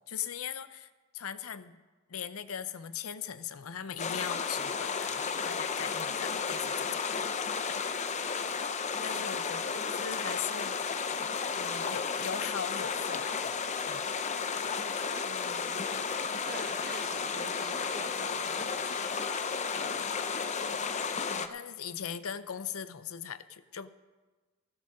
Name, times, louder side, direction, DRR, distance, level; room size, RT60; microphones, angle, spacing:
voice 1, 0.1-1.8 2.1-7.2 7.7-8.2 9.0-11.2 11.5-13.6 13.9-14.0 14.3-14.4 21.3-23.9, left 8 dB, 90° left, 13 dB, 0.6 m, -40 dB
sound 1, 4.0-21.5, left 5 dB, 35° left, 0.6 m, -33 dB
voice 2, 9.1-9.5 10.0-10.2 15.2-16.0 16.4-19.5, right 4 dB, 45° right, 8 dB, 0.9 m, -48 dB
16.0 x 8.7 x 6.4 m, 1.3 s
head